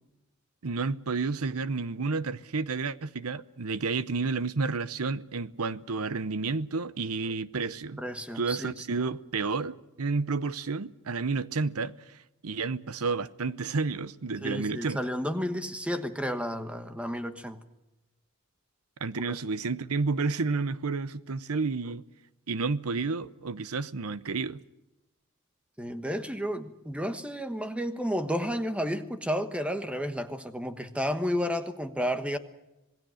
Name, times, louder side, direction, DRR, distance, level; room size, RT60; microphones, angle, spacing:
voice 1, 0.6-8.0 8.3-12.2 12.4-15.0 19.0-22.0 22.5-24.6, right 4 dB, 85° right, 0.8 m, -31 dB
voice 2, 8.0-8.7 14.4-17.6 19.3-19.4 25.8-32.4, equal, 5° right, 1.2 m, -32 dB
26.5 x 19.0 x 6.4 m
head